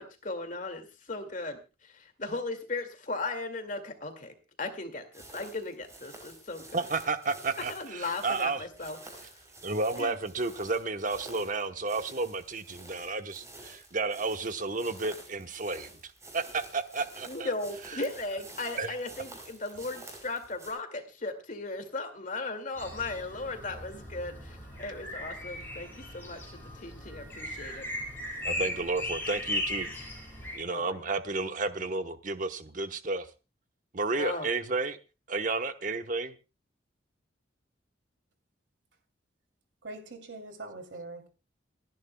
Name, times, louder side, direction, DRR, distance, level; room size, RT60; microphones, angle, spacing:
voice 1, 0.0-6.8 7.7-9.4 10.0-10.2 17.3-27.8 30.7-31.0 34.2-34.5, left 3 dB, 40° left, 2.2 m, -37 dB
sound 1, 5.1-20.7, right 2 dB, 15° right, 5.3 m, -50 dB
voice 2, 6.7-8.7 9.6-17.5 17.8-18.0 18.8-19.0 28.4-29.9 30.5-33.3 33.9-35.0 35.3-36.4, right 3 dB, 45° right, 1.0 m, -32 dB
sound 2, 22.8-30.6, left 1 dB, 10° left, 7.7 m, -37 dB
voice 3, 39.8-41.3, right 2 dB, 65° right, 2.8 m, -42 dB
28.5 x 11.0 x 2.3 m
head